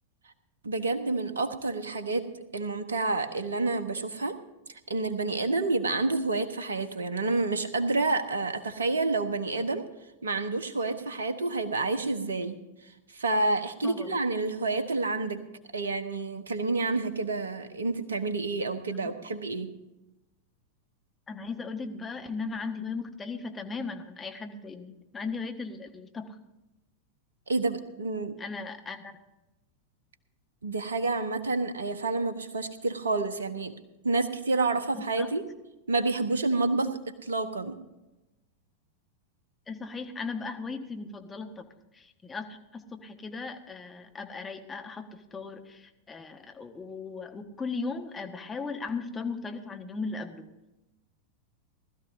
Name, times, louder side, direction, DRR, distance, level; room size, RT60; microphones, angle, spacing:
voice 1, 0.6-2.3 2.5-4.3 4.9-9.8 10.2-12.6 13.1-15.4 15.7-19.7 27.5-28.4 30.6-33.7 34.0-35.4 35.9-36.9 37.2-37.8, right 3 dB, 70° right, 10 dB, 1.2 m, -29 dB
voice 2, 13.8-14.2 19.0-19.1 21.3-26.4 28.4-29.2 34.9-35.3 39.7-41.6 41.9-50.5, left 4 dB, 15° left, 4 dB, 1.4 m, -37 dB
19.5 x 13.0 x 2.7 m, 0.99 s
figure-of-eight pair, 90°, 0 cm